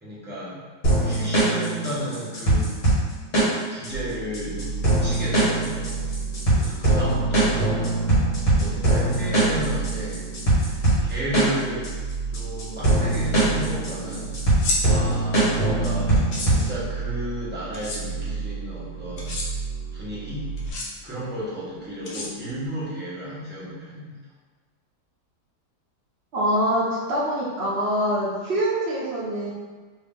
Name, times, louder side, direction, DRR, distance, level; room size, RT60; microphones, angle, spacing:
voice 1, 0.0-0.6 1.0-2.7 3.7-4.7 5.0-6.1 6.6-7.8 8.6-10.2 10.5-11.9 12.3-14.3 14.8-16.2 16.4-19.4 19.9-20.5 21.0-24.2, equal, 10° right, -10 dB, 0.9 m, -33 dB
sound 1, 0.8-16.8, right 2 dB, 50° left, 1.7 m, -22 dB
sound 2, 3.9-20.7, right 5 dB, 70° left, 1.5 m, -33 dB
sound 3, 14.5-14.8 16.2-16.5 17.7-18.0 19.2-19.5 20.6-20.9 22.1-22.7, left 2 dB, 90° left, 1.4 m, -29 dB
voice 2, 26.3-29.5, equal, 55° right, -7 dB, 0.7 m, -24 dB
3.3 x 2.8 x 3.6 m, 1.4 s
omnidirectional pair, 1.8 m